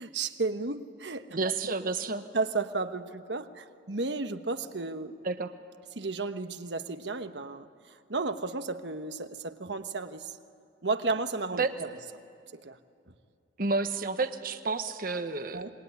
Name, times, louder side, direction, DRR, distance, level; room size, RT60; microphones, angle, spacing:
voice 1, 0.0-1.3 2.3-5.1 5.9-10.3 10.8-11.9 12.5-12.8 15.5-15.7, right 3 dB, 80° right, 8 dB, 1.3 m, -33 dB
voice 2, 1.3-2.2 5.2-5.5 11.6-11.7 13.6-15.6, right 3 dB, 55° right, 8 dB, 1.2 m, -30 dB
27.0 x 22.0 x 9.7 m, 2.3 s
head